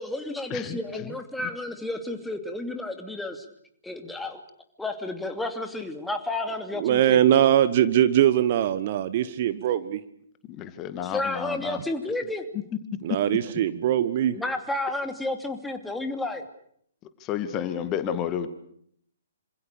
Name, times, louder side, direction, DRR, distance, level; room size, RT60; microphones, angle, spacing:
voice 1, 0.0-3.5 3.8-4.4 4.8-7.2 11.0-12.4 14.0-14.1 14.3-16.4, left 2 dB, 5° left, 5 dB, 2.7 m, -31 dB
voice 2, 6.8-10.0 13.0-14.4, right 11 dB, 40° right, 13 dB, 1.3 m, -21 dB
voice 3, 10.5-11.8 17.2-18.5, left 9 dB, 20° left, 10 dB, 2.1 m, -31 dB
27.0 x 26.5 x 6.8 m, 0.67 s
figure-of-eight pair, 125°, 0 cm